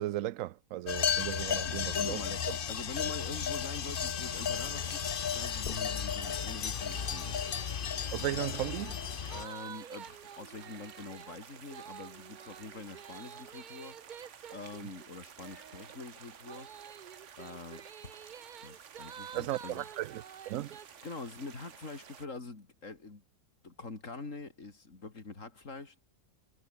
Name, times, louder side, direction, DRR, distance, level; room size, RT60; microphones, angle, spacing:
voice 1, 0.0-2.2 8.1-9.0 19.3-20.8, right 14 dB, 85° right, 1.0 m, -36 dB
sound 1, 0.9-9.5, left 7 dB, 45° left, 1.0 m, -34 dB
voice 2, 1.6-7.4 9.3-14.1 14.5-16.7 17.4-18.3 18.6-19.8 20.6-23.2 23.6-26.0, left 3 dB, 75° left, 3.8 m, -45 dB
sound 2, 4.2-22.3, right 8 dB, 65° right, 1.4 m, -53 dB
sound 3, 6.2-6.4 6.7-21.1, right 8 dB, 50° right, 0.7 m, -50 dB
omnidirectional pair, 1.4 m